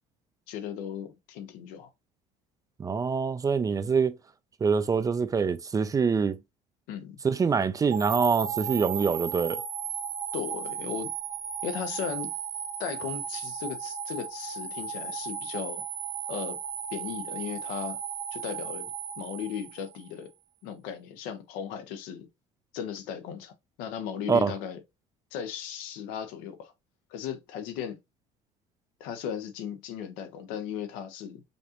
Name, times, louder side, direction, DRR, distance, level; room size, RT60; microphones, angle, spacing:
voice 1, 0.5-1.9 6.9-7.2 10.3-11.1 11.6-12.3 12.8-15.8 16.3-16.6 16.9-18.0 18.3-18.9 19.2-20.3 20.6-22.3 22.7-24.8 25.3-26.7 27.1-28.0 29.0-31.4, left 8 dB, 80° left, 0.8 m, -36 dB
voice 2, 2.8-4.2 4.6-6.4 7.2-9.6 24.3-24.5, right 5 dB, 25° right, 0.4 m, -25 dB
sound 1, 7.9-20.1, right 8 dB, 60° right, 1.0 m, -35 dB
5.2 x 2.5 x 2.8 m
supercardioid pair, 100°, 15 cm